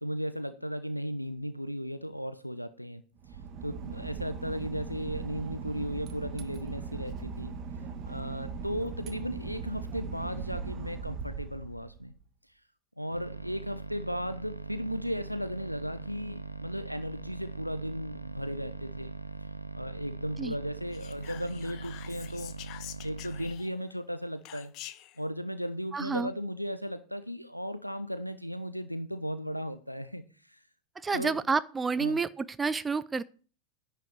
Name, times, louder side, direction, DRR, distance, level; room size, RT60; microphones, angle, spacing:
voice 1, 0.0-7.6 8.0-12.1 12.5-12.6 13.0-19.1 19.4-19.5 19.8-22.5 23.0-24.7 25.2-30.6 31.1-31.4 32.0-32.2, equal, 90° left, 12 dB, 0.6 m, -36 dB
Boat Water vehicle / Engine, 3.2-12.2, right 5 dB, 35° right, 1.7 m, -39 dB
sound 1, 13.1-23.5, right 3 dB, 90° right, 0.8 m, -41 dB
Whispering, 20.9-23.9 24.4-25.2, left 14 dB, 40° left, 1.0 m, -46 dB
voice 2, 25.9-26.3 31.0-33.2, right 4 dB, 15° right, 16 dB, 0.5 m, -29 dB
11.0 x 5.7 x 8.8 m, 0.39 s
figure-of-eight pair, 90°, 0 cm